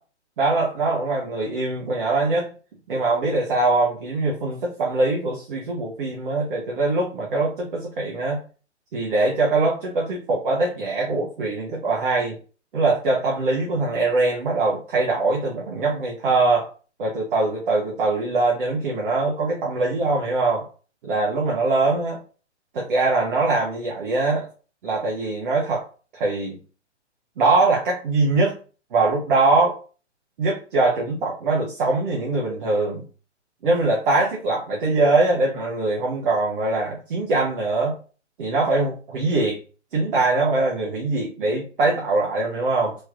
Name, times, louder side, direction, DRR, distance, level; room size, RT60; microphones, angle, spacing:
voice 1, 0.4-2.5 2.9-8.4 8.9-12.4 12.7-16.7 17.0-20.6 21.0-22.2 22.7-24.5 24.8-25.9 26.1-26.6 27.4-28.6 28.9-29.8 30.4-33.0 33.6-38.0 38.4-39.6 39.9-43.0, right 3 dB, 50° right, -3 dB, 0.9 m, -22 dB
3.2 x 3.0 x 2.4 m, 0.37 s
figure-of-eight pair, 125°, 35 cm